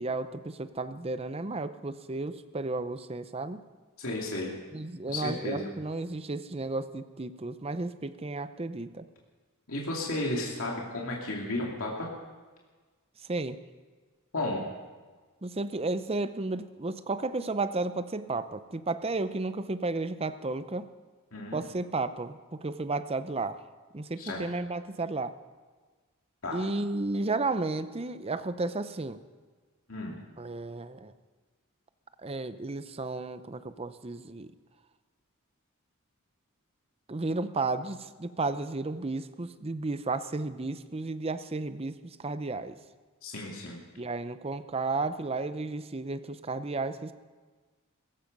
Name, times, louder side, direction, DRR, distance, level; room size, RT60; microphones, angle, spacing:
voice 1, 0.0-3.6 4.7-9.1 13.3-13.6 15.4-20.9 21.5-23.6 23.9-25.3 26.5-29.2 30.4-31.1 32.2-34.5 37.1-42.7 44.0-47.1, right 3 dB, 25° right, 12 dB, 0.6 m, -33 dB
voice 2, 4.0-4.5 5.1-5.7 9.7-12.1 14.3-14.7 21.3-21.6 24.2-24.4 26.4-26.6 29.9-30.2 43.2-43.8, left 2 dB, 70° left, -2 dB, 2.7 m, -33 dB
17.5 x 15.5 x 5.4 m, 1.4 s
head